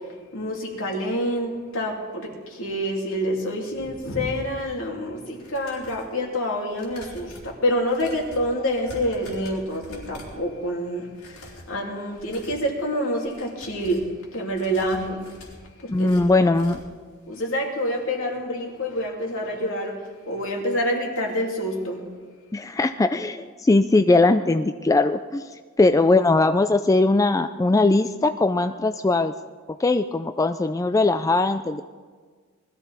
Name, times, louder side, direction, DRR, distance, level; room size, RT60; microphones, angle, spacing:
voice 1, 0.3-14.1 14.3-15.2 15.8-16.5 17.3-20.0 20.3-22.0, equal, 65° left, 0 dB, 2.9 m, -27 dB
sound 1, 5.3-6.1 6.7-10.5 11.1-11.7 12.1-12.7 13.2-14.1 14.5-17.0 17.4-17.5 17.8-17.9, left 1 dB, 90° left, 4.2 m, -45 dB
voice 2, 15.9-16.8 22.5-25.4 25.8-29.3 29.8-31.8, left 2 dB, 15° left, 9 dB, 0.3 m, -20 dB
20.5 x 13.5 x 4.1 m, 1.5 s
head